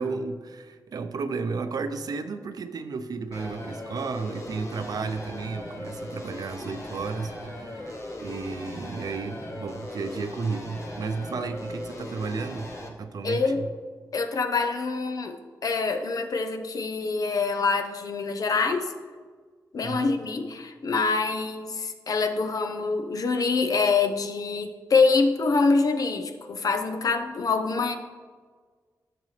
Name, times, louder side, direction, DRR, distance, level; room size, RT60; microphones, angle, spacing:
voice 1, 0.0-13.7 19.8-20.1, right 4 dB, 70° right, 9 dB, 0.6 m, -33 dB
sound 1, 3.3-12.9, left 1 dB, 45° left, 1.3 m, -39 dB
voice 2, 13.2-13.7 14.1-18.9 19.7-28.0, left 4 dB, 60° left, 7 dB, 0.7 m, -25 dB
10.5 x 6.7 x 3.3 m, 1.5 s
wide cardioid pair, 90°, 7 cm